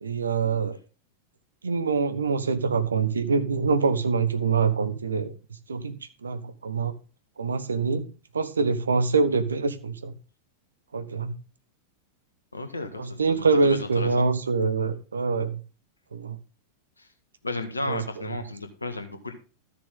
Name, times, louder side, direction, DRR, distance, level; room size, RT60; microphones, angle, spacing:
voice 1, 0.0-0.8 1.6-5.3 5.7-6.0 6.2-6.9 7.4-8.1 8.3-10.1 10.9-11.4 12.9-15.6 16.1-16.4 17.9-18.3, right 4 dB, 75° right, 12 dB, 1.0 m, -25 dB
voice 2, 12.5-14.3 17.0-17.1 17.4-19.3, left 2 dB, 80° left, 7 dB, 1.7 m, -34 dB
13.0 x 6.8 x 3.7 m, 0.35 s
figure-of-eight pair, 90°, 0 cm